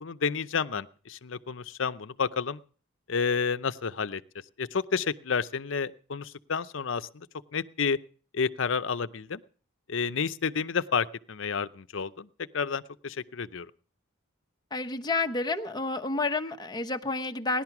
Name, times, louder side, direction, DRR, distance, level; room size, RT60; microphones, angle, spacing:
voice 1, 0.0-2.6 3.1-4.2 4.6-7.3 7.5-8.0 8.3-9.4 9.9-12.3 12.5-13.7, left 5 dB, 70° left, 12 dB, 0.7 m, -30 dB
voice 2, 14.7-17.6, left 3 dB, 20° left, 4 dB, 1.0 m, -30 dB
18.0 x 11.5 x 6.0 m, 0.43 s
head